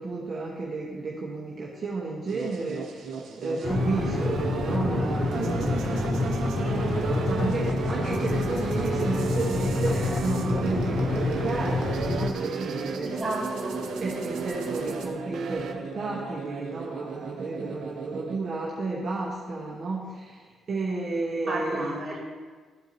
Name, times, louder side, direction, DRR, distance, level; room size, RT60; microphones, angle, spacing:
voice 1, 0.0-13.2 14.0-21.9, right 3 dB, 45° right, -4 dB, 1.0 m, -32 dB
sound 1, 2.3-18.4, right 4 dB, 80° right, 0.9 m, -35 dB
sound 2, 3.6-12.3, left 3 dB, 40° left, 0.7 m, -28 dB
sound 3, 3.6-15.7, right 6 dB, 65° right, 0.6 m, -36 dB
voice 2, 6.3-6.9 13.1-13.8 21.5-22.2, right 1 dB, 20° right, -5 dB, 2.2 m, -33 dB
12.5 x 4.6 x 2.7 m, 1.5 s
cardioid pair, 90°, 0 cm